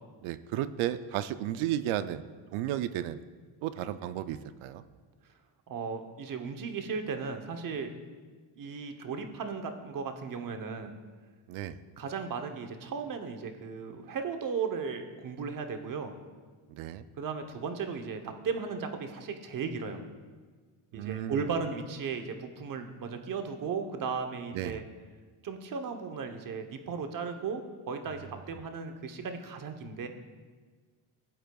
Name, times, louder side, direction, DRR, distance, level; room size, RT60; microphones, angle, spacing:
voice 1, 0.2-2.2 2.5-3.2 3.6-4.8 11.5-11.8 16.7-17.0 20.9-21.4 24.5-24.8, right 12 dB, 80° right, 13 dB, 0.5 m, -33 dB
voice 2, 5.7-8.0 8.6-10.9 12.0-16.1 17.2-20.0 20.9-24.8 25.4-30.1, right 5 dB, 40° right, 6 dB, 0.9 m, -36 dB
16.5 x 7.7 x 2.3 m, 1.4 s
cardioid pair, 125°, 48 cm